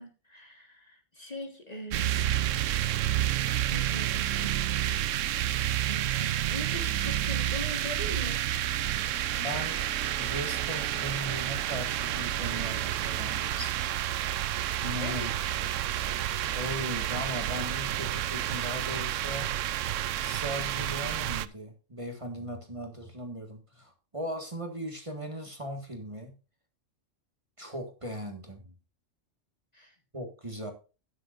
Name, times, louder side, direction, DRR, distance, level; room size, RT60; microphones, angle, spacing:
voice 1, 0.0-2.1 3.7-4.6 5.9-8.5 15.0-15.3 29.7-29.9, left 1 dB, 30° left, 4 dB, 1.7 m, -41 dB
sound 1, 1.9-21.5, right 12 dB, 80° right, 1.0 m, -30 dB
voice 2, 9.4-9.8 10.1-13.9 14.8-15.3 16.5-19.5 20.2-26.3 27.6-28.7 30.1-30.7, equal, 25° right, 4 dB, 1.8 m, -38 dB
12.5 x 9.6 x 2.6 m, 0.33 s
omnidirectional pair, 1.3 m